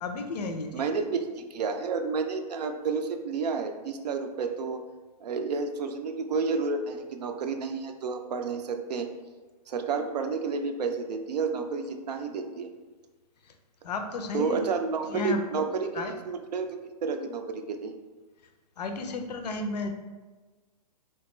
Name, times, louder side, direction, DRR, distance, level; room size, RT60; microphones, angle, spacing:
voice 1, 0.0-0.9 13.4-13.5 13.8-14.7 15.1-15.7 15.9-16.1 18.8-19.9, left 3 dB, 85° left, 6 dB, 0.5 m, -33 dB
voice 2, 0.7-4.8 5.2-9.1 9.7-12.7 14.3-16.7 17.0-17.9, right 5 dB, 85° right, 6 dB, 0.5 m, -30 dB
3.3 x 2.2 x 3.0 m, 1.3 s
hypercardioid pair, 145°, 20 cm